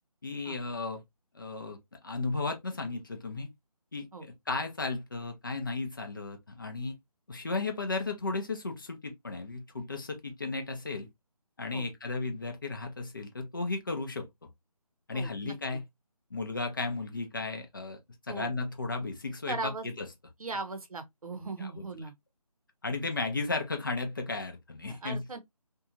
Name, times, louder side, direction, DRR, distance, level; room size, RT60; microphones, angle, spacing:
voice 1, 0.2-1.0 1.3-1.8 2.0-3.5 3.9-7.0 7.3-11.1 11.6-14.3 15.1-15.8 16.3-18.0 18.3-19.6 19.8-20.1 21.6-21.8 22.8-25.4, left 3 dB, 30° left, 0.6 m, -34 dB
voice 2, 15.1-15.5 18.3-18.5 19.5-19.9 20.4-22.1 24.8-25.4, right 3 dB, 60° right, 0.8 m, -38 dB
2.7 x 2.3 x 2.7 m
figure-of-eight pair, 160°, 20 cm